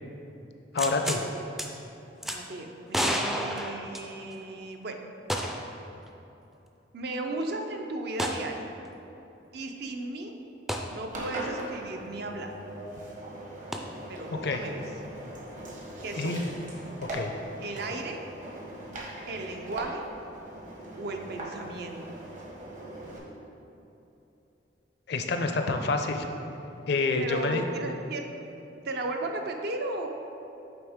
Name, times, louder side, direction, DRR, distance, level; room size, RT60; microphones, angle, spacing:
voice 1, 0.7-1.2 14.3-14.6 16.2-16.4 17.1-17.3 25.1-26.3 26.9-27.6, left 3 dB, 65° left, 5 dB, 0.5 m, -27 dB
sound 1, 0.8-1.2 1.6-1.7 2.2-2.4 2.9-4.4 5.3-5.7 6.1-6.2 8.2-8.5 10.7-10.9 13.7-13.8, equal, ahead, 0.3 m, -30 dB
voice 2, 2.2-5.0 6.9-8.7 9.5-10.3 10.9-12.5 14.1-14.8 16.0-16.3 17.6-18.2 19.3-20.0 21.0-22.2 27.2-28.2 28.8-30.1, right 2 dB, 65° right, 4 dB, 0.6 m, -35 dB
Engine, 11.1-23.2, right 1 dB, 45° right, 1.0 m, -40 dB
8.8 x 3.4 x 3.6 m, 2.9 s
head